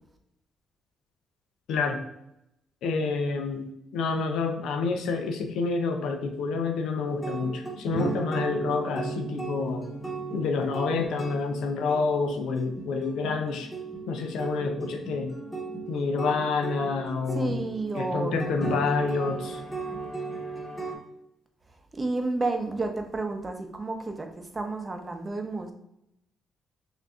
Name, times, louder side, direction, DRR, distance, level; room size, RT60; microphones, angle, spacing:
voice 1, 1.7-2.0 2.8-9.9 10.3-13.7 14.1-15.4 15.9-17.6 17.9-19.6, left 4 dB, 80° left, 5 dB, 0.5 m, -28 dB
sound 1, 7.1-21.0, right 3 dB, 10° left, 1.2 m, -36 dB
voice 2, 17.3-18.6 21.9-25.7, right 2 dB, 25° right, 5 dB, 0.6 m, -31 dB
6.1 x 2.7 x 2.3 m, 0.80 s
cardioid pair, 90°, 0 cm